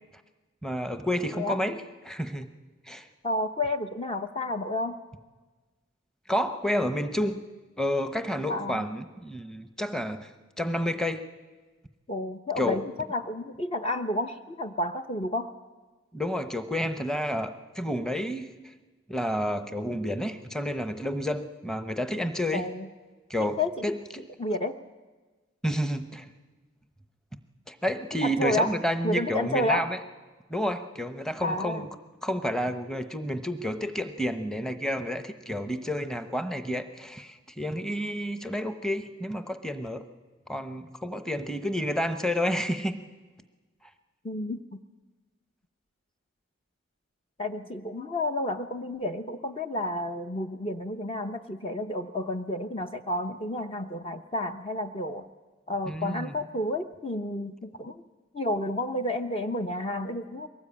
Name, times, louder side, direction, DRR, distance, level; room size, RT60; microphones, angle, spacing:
voice 1, 0.6-1.8 2.0-2.5 2.9-3.1 6.3-7.4 7.8-10.3 10.6-11.2 12.6-12.8 16.1-18.5 19.1-22.6 23.3-24.3 25.6-26.3 27.7-30.0 30.5-31.9 32.2-40.1 40.5-43.0 55.9-56.4, equal, 5° left, 9 dB, 0.9 m, -30 dB
voice 2, 3.2-5.0 8.5-8.8 12.1-12.8 13.1-15.5 22.5-22.9 23.6-23.7 24.4-24.7 28.2-28.7 29.0-29.9 31.4-31.9 44.2-44.8 47.4-55.3 55.7-58.0 58.3-60.5, left 1 dB, 25° left, 7 dB, 0.7 m, -30 dB
22.5 x 18.5 x 8.7 m, 1.3 s
head